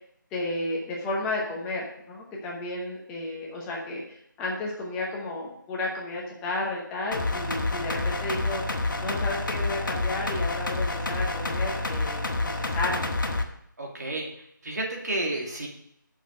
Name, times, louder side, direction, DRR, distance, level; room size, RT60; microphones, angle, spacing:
voice 1, 0.3-8.6 9.0-13.1, left 2 dB, 5° left, -3 dB, 1.0 m, -32 dB
sound 1, 7.1-13.4, left 2 dB, 70° left, 1.5 m, -28 dB
voice 2, 13.8-14.3 14.6-15.7, right 2 dB, 55° right, 0 dB, 2.6 m, -31 dB
6.5 x 6.4 x 6.3 m, 0.72 s
figure-of-eight pair, 165°, 11 cm